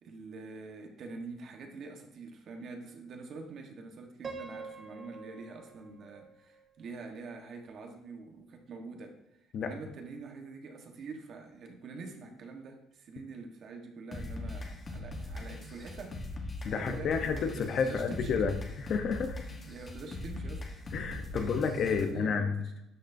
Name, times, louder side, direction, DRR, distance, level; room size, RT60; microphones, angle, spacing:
voice 1, 0.0-9.2 9.6-16.2 16.6-18.5 19.7-20.7 21.3-21.6 21.8-22.7, right 4 dB, 50° right, 4 dB, 1.3 m, -45 dB
Piano, 4.2-7.3, right 4 dB, 25° right, 0.6 m, -46 dB
sound 1, 14.1-22.1, left 2 dB, 25° left, 1.2 m, -41 dB
voice 2, 16.6-19.4 20.9-22.5, left 5 dB, 50° left, 7 dB, 0.9 m, -30 dB
12.0 x 6.5 x 2.7 m, 0.89 s
cardioid pair, 145°, 0 cm